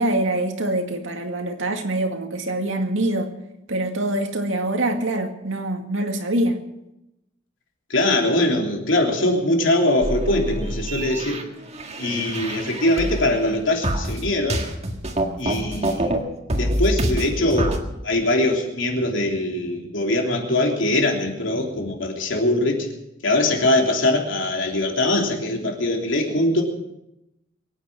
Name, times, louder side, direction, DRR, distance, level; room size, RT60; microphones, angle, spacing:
voice 1, 0.0-3.3 3.7-6.6, right 1 dB, 85° right, 4 dB, 2.1 m, -24 dB
voice 2, 7.9-11.5 12.0-14.6 15.4-16.1 16.6-17.8 18.0-22.9 23.2-26.6, left 1 dB, 75° left, 1 dB, 3.3 m, -22 dB
sound 1, 10.0-13.5 13.8-16.2 16.5-17.8, right 1 dB, 35° right, 1.8 m, -26 dB
23.0 x 9.5 x 6.2 m, 0.88 s
head